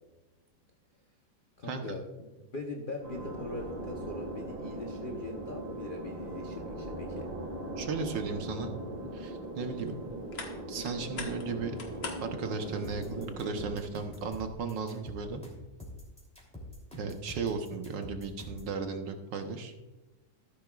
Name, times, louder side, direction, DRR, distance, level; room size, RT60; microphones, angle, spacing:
voice 1, 1.6-7.3, left 2 dB, 40° left, 1 dB, 0.7 m, -41 dB
sound 1, 3.0-13.8, right 1 dB, 40° right, 3.9 m, -40 dB
voice 2, 7.8-8.8 9.1-10.0 10.7-11.8 12.2-15.4 17.0-19.7, right 4 dB, 70° right, 6 dB, 1.6 m, -35 dB
sound 2, 9.4-14.6, left 4 dB, 75° left, 2.3 m, -46 dB
sound 3, 12.8-18.7, left 1 dB, 5° left, 2.9 m, -45 dB
13.5 x 11.5 x 2.4 m, 1.1 s
omnidirectional pair, 2.1 m